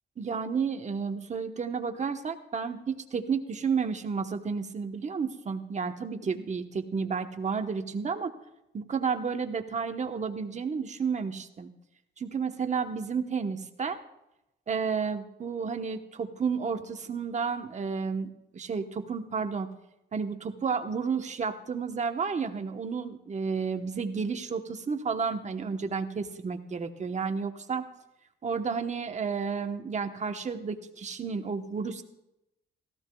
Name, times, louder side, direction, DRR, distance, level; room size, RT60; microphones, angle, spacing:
voice 1, 0.2-8.3 8.7-11.7 12.2-14.0 14.7-19.7 20.1-27.8 28.4-32.0, right 5 dB, 35° right, 6 dB, 1.1 m, -31 dB
17.0 x 14.5 x 2.3 m, 0.88 s
cardioid pair, 90°, 20 cm